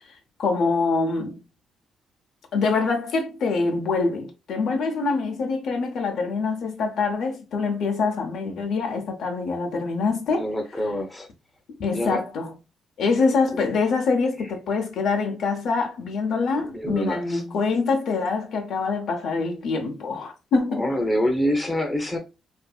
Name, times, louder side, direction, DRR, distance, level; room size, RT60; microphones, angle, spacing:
voice 1, 0.4-1.4 2.5-10.5 11.8-12.6 13.0-20.9, left 4 dB, 70° left, 0.7 m, -25 dB
voice 2, 10.3-11.3 11.9-12.2 13.5-13.6 16.6-17.4 20.8-22.2, equal, 10° left, 0.7 m, -26 dB
2.6 x 2.5 x 2.3 m
cardioid pair, 90°, 0 cm